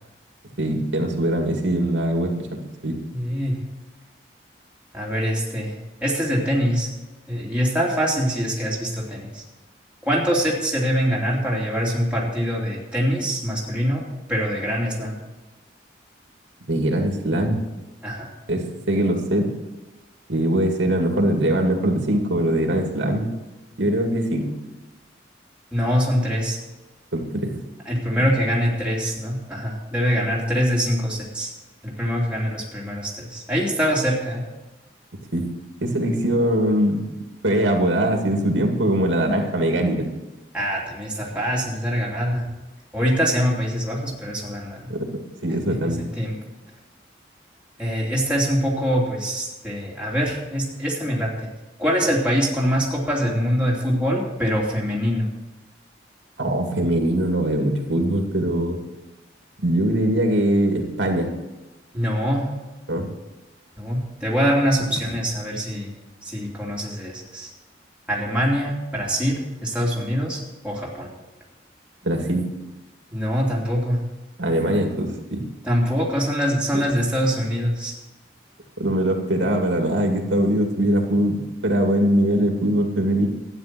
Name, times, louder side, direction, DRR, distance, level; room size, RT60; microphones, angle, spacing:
voice 1, 0.6-3.0 16.7-17.6 18.5-19.5 20.3-23.3 23.8-24.5 27.1-27.6 35.3-35.5 35.8-37.0 37.4-40.1 44.9-45.0 45.4-46.0 56.4-58.8 59.6-61.3 62.9-63.1 72.0-72.5 74.4-75.4 76.7-76.8 78.8-81.4 81.6-83.3, right 1 dB, 85° right, 3 dB, 2.3 m, -22 dB
voice 2, 3.1-3.6 4.9-5.8 6.0-6.9 7.3-9.4 10.0-14.0 14.3-15.2 18.0-18.3 25.7-26.6 27.8-31.5 31.8-34.5 40.5-42.4 42.9-44.9 45.8-45.9 46.2-46.4 47.8-51.5 51.8-55.3 61.9-62.5 63.8-65.9 66.2-67.5 68.1-71.1 73.1-74.0 75.6-77.9, equal, 5° right, -5 dB, 2.9 m, -24 dB
13.0 x 9.8 x 6.1 m, 1.1 s
head